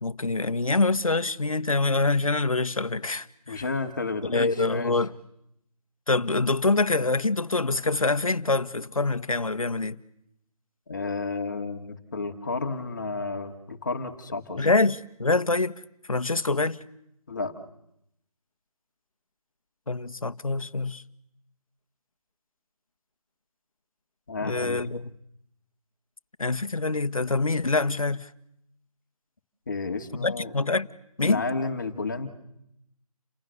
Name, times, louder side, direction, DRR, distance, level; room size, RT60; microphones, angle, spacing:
voice 1, 0.0-3.6 4.2-5.2 6.1-9.9 14.6-15.7 16.1-16.8 19.9-21.0 24.4-25.1 26.4-28.3 30.2-30.9 31.2-31.4, left 3 dB, 60° left, 1.5 m, -25 dB
voice 2, 3.5-4.9 10.9-14.7 17.3-17.5 24.3-24.9 29.7-30.5 31.2-32.3, left 3 dB, 30° left, 2.3 m, -31 dB
29.5 x 27.0 x 6.8 m
figure-of-eight pair, 165°, 20 cm